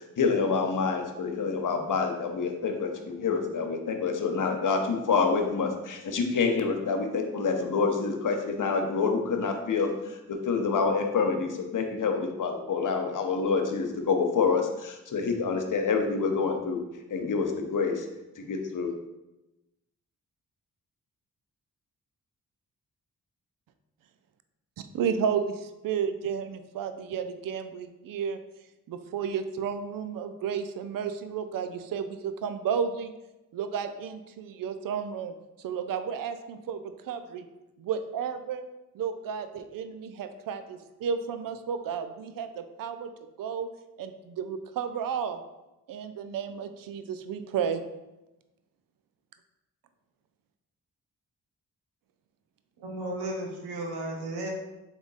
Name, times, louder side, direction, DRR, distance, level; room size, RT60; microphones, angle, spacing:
voice 1, 0.0-16.8 17.1-18.0 18.4-18.9, left 5 dB, 55° left, 4 dB, 0.8 m, -27 dB
voice 2, 24.9-28.4 28.9-33.1 33.5-35.3 35.6-36.8 37.1-37.4 37.8-38.6 38.9-43.1 43.4-43.7 44.0-45.4 45.9-47.8, right 7 dB, 60° right, 9 dB, 0.5 m, -32 dB
voice 3, 52.8-54.5, right 1 dB, 85° right, 0 dB, 0.9 m, -34 dB
3.6 x 3.0 x 4.0 m, 1.0 s
supercardioid pair, 40°, 38 cm